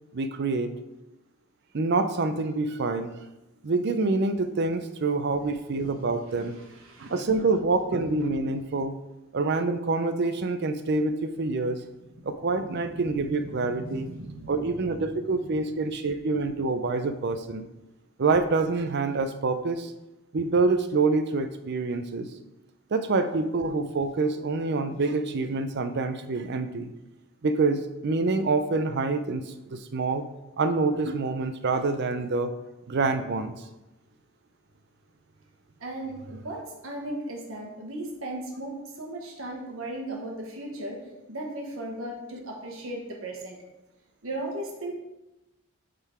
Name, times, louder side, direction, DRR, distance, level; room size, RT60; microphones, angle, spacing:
voice 1, 0.1-0.7 1.7-3.1 3.6-6.6 7.0-9.0 9.3-11.8 12.2-14.1 14.5-17.7 18.2-19.9 20.3-22.3 22.9-26.9 27.4-30.2 30.6-32.5 32.9-33.6, right 3 dB, 50° right, 10 dB, 0.5 m, -26 dB
voice 2, 6.4-7.2 12.2-15.1 35.8-41.0 41.3-43.6 44.2-44.9, right 1 dB, 65° right, 1 dB, 1.2 m, -37 dB
8.1 x 3.8 x 4.3 m, 0.98 s
head